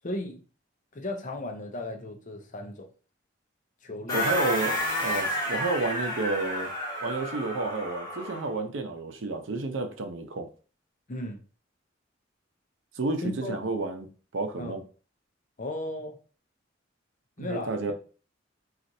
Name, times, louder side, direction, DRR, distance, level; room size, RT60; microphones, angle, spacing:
voice 1, 0.0-0.4 0.9-2.9 3.8-4.3 11.1-11.4 13.2-13.6 14.6-14.8 15.6-16.2 17.4-17.9, left 1 dB, 40° left, 0.6 m, -35 dB
sound 1, 4.1-8.5, equal, 20° left, 1.5 m, -30 dB
voice 2, 4.1-6.7 7.0-10.5 12.9-14.1 14.3-14.8 17.4-17.9, right 3 dB, 85° right, 0.6 m, -31 dB
4.1 x 2.4 x 2.6 m
head